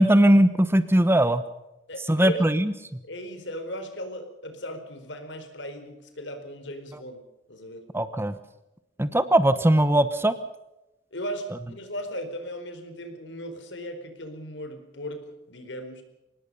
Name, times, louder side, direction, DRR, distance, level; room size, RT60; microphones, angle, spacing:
voice 1, 0.0-1.4 2.1-2.7 7.9-8.3 9.0-10.3, right 1 dB, 15° right, 12 dB, 1.0 m, -19 dB
voice 2, 1.9-2.4 3.0-7.2 7.5-7.8 9.1-9.3 11.1-16.0, equal, 75° left, 7 dB, 4.5 m, -37 dB
24.5 x 19.5 x 5.5 m, 0.95 s
head